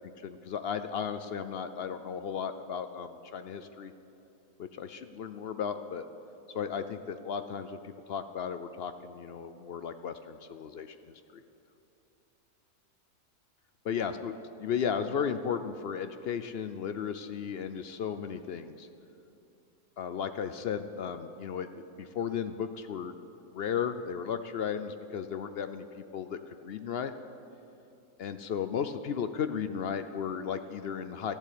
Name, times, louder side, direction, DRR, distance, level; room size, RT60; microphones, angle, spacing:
voice 1, 0.2-3.9 4.6-6.1 6.5-11.4 13.9-14.3 14.6-18.9 20.0-23.1 23.5-27.1 28.2-31.3, left 7 dB, 75° left, 10 dB, 0.5 m, -35 dB
14.0 x 12.0 x 8.5 m, 2.8 s
omnidirectional pair, 1.7 m